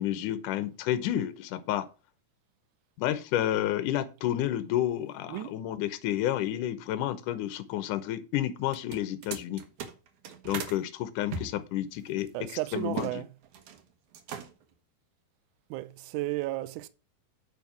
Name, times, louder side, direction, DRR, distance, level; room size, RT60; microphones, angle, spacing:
voice 1, 0.0-1.9 3.0-9.6 10.5-13.2, left 12 dB, 75° left, 2.1 m, -30 dB
sound 1, 8.6-10.8 11.3-13.2 13.4-13.8 14.1-14.7, right 6 dB, 65° right, 2.4 m, -39 dB
voice 2, 12.3-13.3 15.7-16.9, right 16 dB, 85° right, 1.8 m, -33 dB
9.4 x 5.4 x 6.0 m
omnidirectional pair, 4.4 m